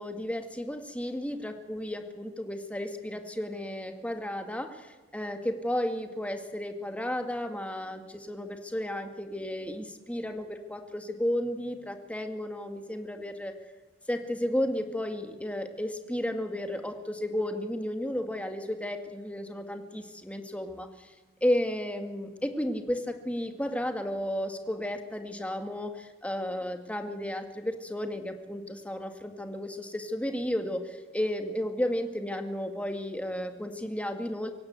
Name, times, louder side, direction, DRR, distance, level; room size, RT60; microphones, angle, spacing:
voice 1, 0.0-13.5 14.1-21.1 21.4-34.5, left 1 dB, 5° left, 6 dB, 2.1 m, -33 dB
25.0 x 17.0 x 8.2 m, 1.2 s
head